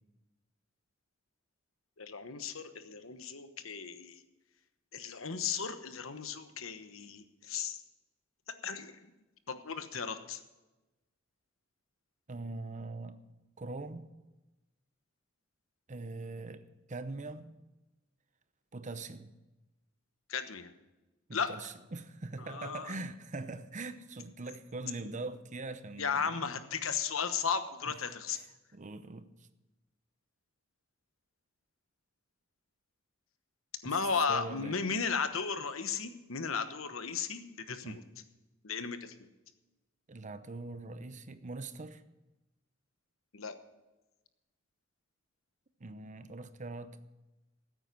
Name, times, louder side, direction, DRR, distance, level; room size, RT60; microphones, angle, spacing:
voice 1, 2.0-4.2 4.9-7.8 8.5-9.1 9.5-10.4 20.3-20.7 21.3-21.5 22.4-23.0 26.0-28.4 33.8-38.0 38.6-39.1 43.3-43.6, left 6 dB, 90° left, 1.1 m, -35 dB
voice 2, 12.3-13.2 13.6-14.1 15.9-17.6 18.7-19.3 21.3-26.6 28.7-29.5 33.8-34.0 34.3-34.8 37.8-38.0 40.1-42.0 45.8-47.0, right 3 dB, 40° right, 0.8 m, -42 dB
14.5 x 8.9 x 6.1 m
head